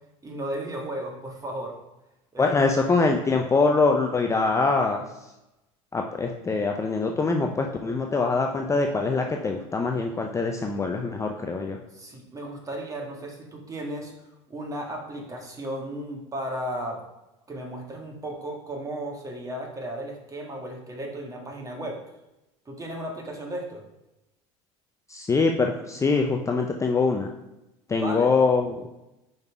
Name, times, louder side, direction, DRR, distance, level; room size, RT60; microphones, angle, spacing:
voice 1, 0.2-1.8 2.3-2.8 11.9-14.1 14.5-17.0 17.5-22.0 22.7-23.8 28.0-28.3, right 1 dB, 20° right, 0 dB, 1.7 m, -35 dB
voice 2, 2.4-5.0 5.9-11.8 25.1-27.3 27.9-28.7, left 4 dB, 20° left, 3 dB, 0.6 m, -23 dB
5.2 x 4.0 x 4.7 m, 0.93 s
hypercardioid pair, 80°, 15 cm